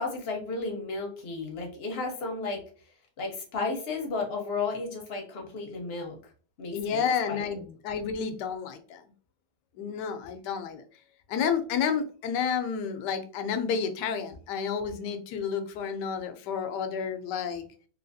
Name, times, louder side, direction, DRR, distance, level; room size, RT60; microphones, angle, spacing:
voice 1, 0.0-2.6 3.2-6.2 6.6-7.0 7.3-7.4, left 3 dB, 50° left, 1 dB, 0.8 m, -33 dB
voice 2, 6.7-9.0 9.8-10.8 11.3-17.7, left 6 dB, 80° left, 8 dB, 1.2 m, -30 dB
3.1 x 2.8 x 2.6 m, 0.41 s
omnidirectional pair, 1.9 m